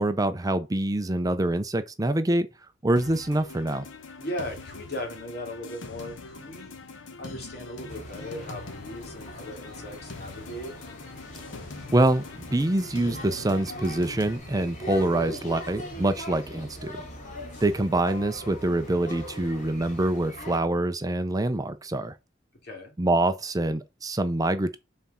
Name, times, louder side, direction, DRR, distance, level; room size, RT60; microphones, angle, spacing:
voice 1, 0.0-2.5 2.8-3.9 11.9-17.0 17.6-22.1 23.0-24.8, right 1 dB, 20° right, 0.5 m, -25 dB
sound 1, 3.0-14.4, left 3 dB, 80° left, 1.0 m, -43 dB
voice 2, 4.2-6.7 7.2-10.7 22.6-22.9, left 1 dB, 55° left, 2.7 m, -37 dB
sound 2, 7.9-20.6, left 1 dB, 40° left, 2.4 m, -41 dB
5.8 x 4.3 x 5.6 m
head